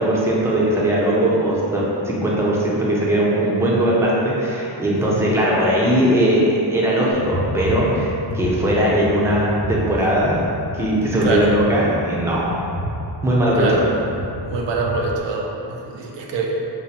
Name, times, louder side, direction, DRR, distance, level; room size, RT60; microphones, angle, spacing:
voice 1, 0.0-10.4 10.7-12.6 13.2-13.8, right 1 dB, 5° right, -6 dB, 0.5 m, -19 dB
sound 1, 7.1-15.2, equal, 55° left, 0.9 m, -30 dB
voice 2, 11.2-11.6 13.5-13.9 14.5-16.6, right 3 dB, 75° right, -1 dB, 0.5 m, -24 dB
2.7 x 2.2 x 4.1 m, 2.8 s
wide cardioid pair, 100°, 43 cm